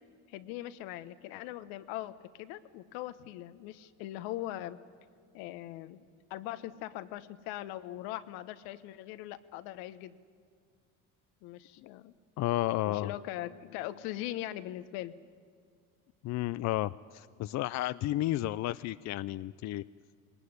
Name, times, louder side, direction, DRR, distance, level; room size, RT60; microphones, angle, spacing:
voice 1, 0.3-4.8 5.3-6.0 6.3-10.2 11.4-12.1 12.9-15.1, left 14 dB, 75° left, 12 dB, 1.2 m, -40 dB
voice 2, 12.4-13.1 16.2-19.8, left 15 dB, 50° left, 15 dB, 0.5 m, -32 dB
21.0 x 19.5 x 9.6 m, 2.1 s
supercardioid pair, 90°, 35 cm